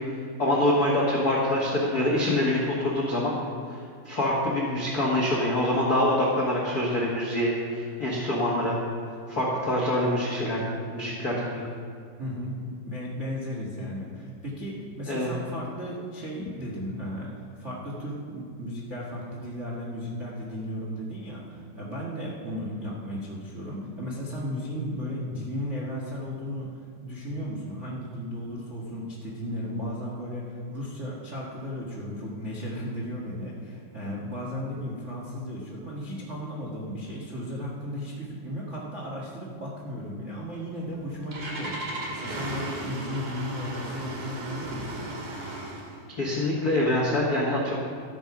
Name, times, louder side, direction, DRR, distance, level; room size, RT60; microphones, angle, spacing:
voice 1, 0.4-3.3 4.0-8.8 9.3-11.7 15.1-15.3 46.2-47.7, left 1 dB, 80° left, -3 dB, 0.8 m, -25 dB
voice 2, 12.2-12.5 12.8-17.3 17.6-26.7 27.0-45.0, equal, 85° right, -4 dB, 0.6 m, -35 dB
Engine starting, 40.8-46.0, right 1 dB, 50° right, 2.8 m, -36 dB
13.5 x 9.1 x 6.0 m, 2.2 s
omnidirectional pair, 4.5 m